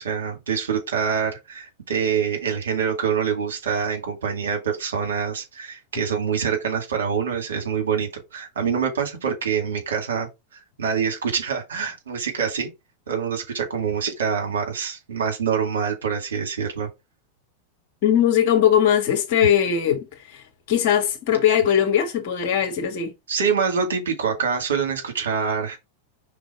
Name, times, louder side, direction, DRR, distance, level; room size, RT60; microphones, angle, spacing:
voice 1, 0.0-10.3 10.8-12.7 13.1-16.9 19.4-19.5 23.3-25.8, right 6 dB, 65° right, 2.3 m, -25 dB
voice 2, 18.0-23.1, left 9 dB, 50° left, 1.7 m, -20 dB
5.3 x 3.8 x 4.7 m
figure-of-eight pair, 90°, 0 cm